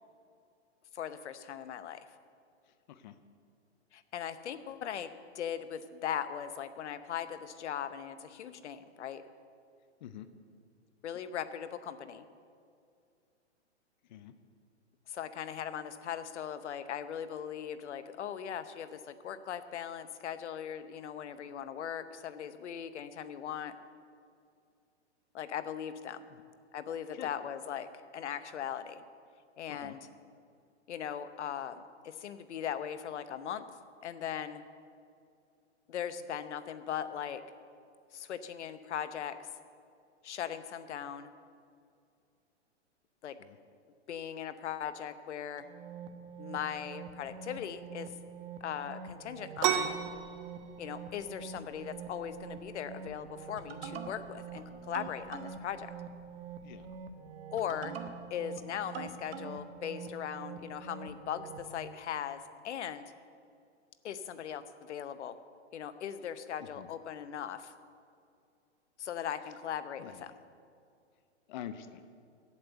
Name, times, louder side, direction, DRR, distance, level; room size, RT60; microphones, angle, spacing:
voice 1, 0.9-2.1 3.9-9.2 11.0-12.2 15.1-23.8 25.3-26.3 26.7-29.0 29.6-30.0 30.9-33.7 34.0-34.6 35.9-37.4 38.1-39.5 40.2-41.3 43.2-43.4 44.1-45.7 46.4-48.1 48.6-50.0 50.8-55.9 57.5-57.9 58.3-63.0 64.0-65.4 65.7-67.7 69.0-70.3, left 9 dB, 75° left, 11 dB, 0.9 m, -39 dB
voice 2, 2.7-3.2 10.0-10.3 14.1-14.3 26.3-26.4 27.1-27.3 29.7-30.0 43.4-43.6 56.6-56.9 66.7-66.9 70.0-70.2 71.5-72.0, left 10 dB, 40° left, 10 dB, 0.6 m, -46 dB
sound 1, 45.6-61.7, right 6 dB, 55° right, 1.2 m, -45 dB
sound 2, 49.6-57.0, right 9 dB, 30° right, 0.5 m, -38 dB
8.6 x 8.6 x 8.0 m, 2.3 s
hypercardioid pair, 155°, 35 cm